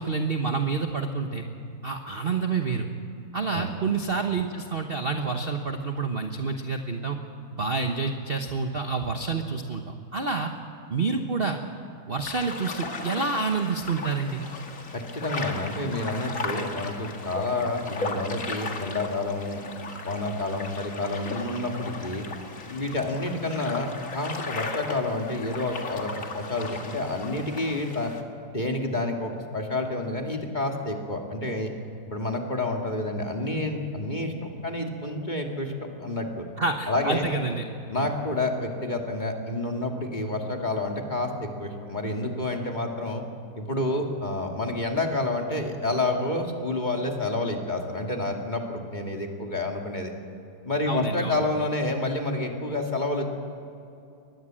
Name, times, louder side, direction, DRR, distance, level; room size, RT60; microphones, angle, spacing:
voice 1, 0.0-1.4 1.8-2.9 3.3-7.2 7.5-10.5 10.9-11.6 12.1-14.4 36.6-37.6 37.9-38.1 50.9-51.4, right 4 dB, 35° right, 4 dB, 1.1 m, -28 dB
sound 1, 12.3-28.2, left 3 dB, 45° left, 2.0 m, -36 dB
voice 2, 14.9-19.6 20.0-22.3 22.7-28.1 28.5-31.7 32.0-36.5 36.9-37.3 37.9-43.2 43.6-50.1 50.6-53.3, left 2 dB, 25° left, 1 dB, 2.4 m, -29 dB
23.0 x 20.0 x 7.6 m, 2.7 s
omnidirectional pair, 2.1 m